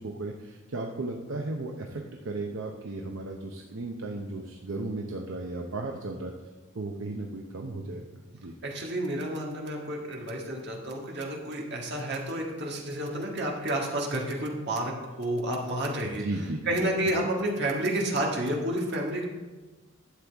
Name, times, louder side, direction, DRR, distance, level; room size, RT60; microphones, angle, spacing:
voice 1, 0.0-6.3 6.7-8.5 16.0-16.6, right 2 dB, 70° right, 1 dB, 0.7 m, -35 dB
voice 2, 8.6-16.2 16.6-19.3, right 1 dB, 55° right, -1 dB, 1.7 m, -30 dB
11.5 x 7.6 x 3.5 m, 1.2 s
head